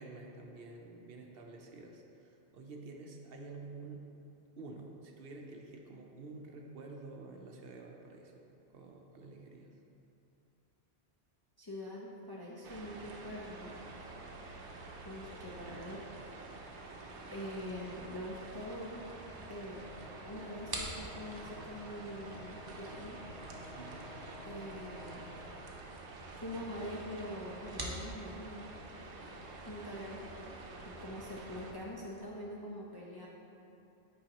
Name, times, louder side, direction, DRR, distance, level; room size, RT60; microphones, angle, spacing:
voice 1, 0.0-4.0 4.6-8.3 8.7-9.7 23.8-24.0, right 3 dB, 65° right, 1 dB, 0.8 m, -49 dB
voice 2, 11.6-13.7 15.0-16.1 16.6-16.8 17.3-19.0 19.5-19.8 20.3-23.2 24.4-25.2 26.3-28.7 29.7-30.6 30.9-33.3, equal, 30° left, -5 dB, 0.4 m, -44 dB
sound 1, 12.6-31.7, right 2 dB, 85° right, 1.0 m, -48 dB
sound 2, 19.9-25.5, left 1 dB, 75° left, 0.9 m, -52 dB
sound 3, 20.6-32.3, right 1 dB, 25° right, 0.6 m, -49 dB
8.5 x 4.7 x 2.9 m, 2.8 s
omnidirectional pair, 1.1 m